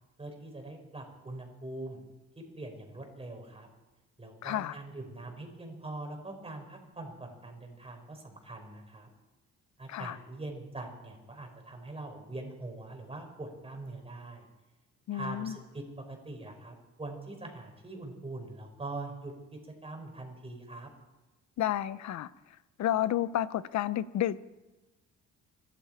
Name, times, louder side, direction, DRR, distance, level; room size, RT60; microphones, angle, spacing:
voice 1, 0.2-2.0 2.5-3.7 4.2-9.1 9.8-14.5 15.1-20.9, right 2 dB, 20° right, 4.8 m, -43 dB
voice 2, 4.4-4.8 9.9-10.2 15.1-15.6 21.6-22.3 22.8-24.4, left 12 dB, 65° left, 0.8 m, -31 dB
25.5 x 12.5 x 4.5 m
cardioid pair, 90°, 30 cm